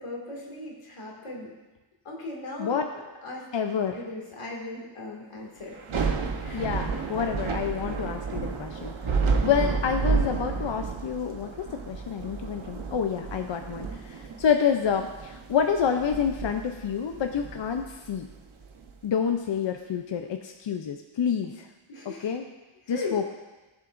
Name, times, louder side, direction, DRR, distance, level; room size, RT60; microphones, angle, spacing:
voice 1, 0.0-1.5 2.1-2.8 3.2-3.5 3.9-5.8 6.4-6.7 21.9-22.3 22.9-23.2, left 2 dB, 90° left, -2 dB, 2.2 m, -38 dB
voice 2, 3.5-4.0 6.5-11.5 11.9-18.3 19.0-21.7 22.2-22.4 22.9-23.3, left 7 dB, 60° left, 5 dB, 0.6 m, -28 dB
Thunder / Rain, 5.7-18.9, right 5 dB, 70° right, 1.0 m, -31 dB
17.0 x 7.3 x 2.5 m, 1.1 s
wide cardioid pair, 135°, 50 cm